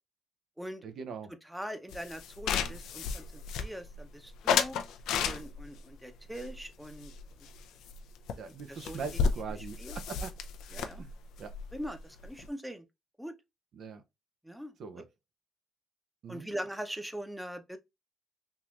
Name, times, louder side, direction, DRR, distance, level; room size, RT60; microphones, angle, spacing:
voice 1, 0.8-1.3 8.3-10.4 11.0-11.1 11.4-11.5 13.7-14.0 14.8-15.1 16.2-16.5, right 5 dB, 65° right, 0.6 m, -41 dB
voice 2, 1.5-4.8 5.2-7.1 8.7-9.0 9.8-10.0 10.7-11.0 11.7-12.8 13.2-13.3 14.4-14.7 16.3-17.8, equal, 5° right, 0.7 m, -41 dB
sound 1, 1.9-4.0 4.5-5.8 6.3-7.6 7.9-8.0 8.3-8.4 8.6-12.5, left 6 dB, 85° left, 0.5 m, -33 dB
3.7 x 2.9 x 2.4 m
cardioid pair, 90°, 0 cm